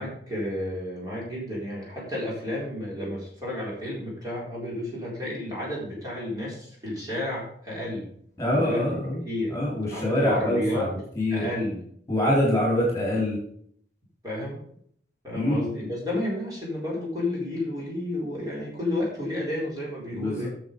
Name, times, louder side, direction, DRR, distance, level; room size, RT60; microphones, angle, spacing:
voice 1, 0.0-8.1 8.5-8.8 9.2-9.6 9.9-10.9 11.3-11.8 14.2-14.6 15.2-20.5, left 1 dB, 20° right, -5 dB, 4.2 m, -31 dB
voice 2, 8.4-9.2 9.5-11.5 12.1-13.4 15.3-15.9 20.1-20.5, left 1 dB, 15° left, -4 dB, 3.8 m, -25 dB
9.6 x 7.0 x 5.3 m, 0.64 s
head